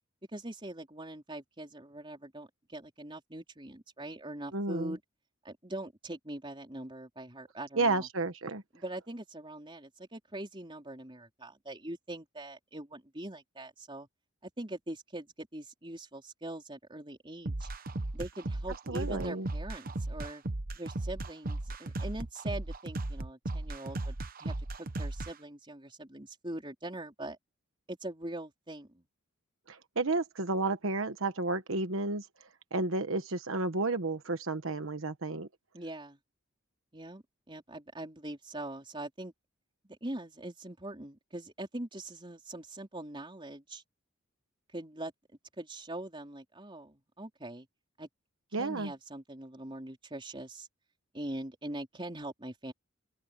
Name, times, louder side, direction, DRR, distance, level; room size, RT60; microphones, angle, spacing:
voice 1, 0.3-5.0 5.4-8.1 8.7-14.1 14.4-17.7 18.1-20.4 20.8-24.1 24.4-27.4 27.9-29.0 35.7-36.2 36.9-39.3 39.8-43.8 44.7-45.1 45.6-47.7 48.0-48.1 48.6-50.7 51.1-52.7, right 1 dB, 25° right, 4.2 m, -42 dB
voice 2, 4.5-4.9 7.8-8.6 18.9-19.5 29.7-32.3 32.7-35.5 48.5-48.9, right 3 dB, 75° right, 1.2 m, -31 dB
sound 1, 17.5-25.3, right 2 dB, 45° right, 1.0 m, -36 dB
open air
head